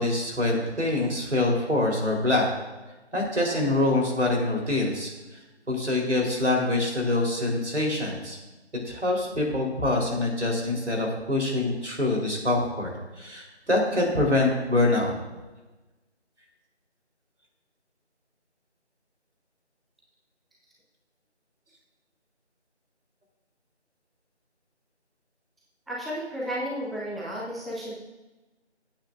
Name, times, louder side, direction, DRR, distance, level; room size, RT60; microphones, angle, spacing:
voice 1, 0.0-2.5 3.1-5.1 5.7-8.4 8.8-12.9 13.2-15.1, left 2 dB, 85° right, 0 dB, 3.9 m, -25 dB
voice 2, 25.9-28.0, equal, ahead, -6 dB, 0.7 m, -33 dB
19.0 x 8.8 x 2.6 m, 1.1 s
figure-of-eight pair, 175°, 34 cm